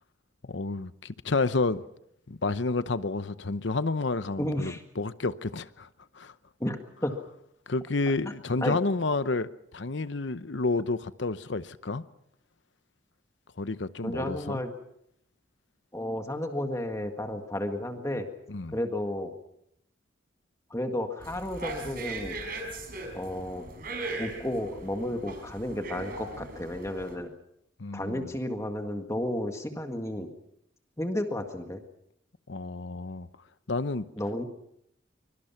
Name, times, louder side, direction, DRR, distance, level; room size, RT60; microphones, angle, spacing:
voice 1, 0.5-1.8 2.3-5.9 6.1-6.3 7.7-9.5 9.7-12.1 13.6-14.6 18.5-18.8 27.8-28.3 32.5-33.3 33.7-34.1, left 3 dB, 70° left, 0.8 m, -30 dB
voice 2, 4.4-4.8 6.6-7.1 8.2-8.3 8.6-8.8 14.0-14.7 15.9-18.3 18.7-19.3 20.7-22.4 23.1-23.7 24.2-27.3 27.9-30.3 31.0-31.8 34.2-34.4, left 1 dB, 15° left, 1.8 m, -32 dB
sound 1, 21.2-27.1, right 2 dB, 50° right, 5.2 m, -39 dB
24.5 x 24.0 x 5.8 m
head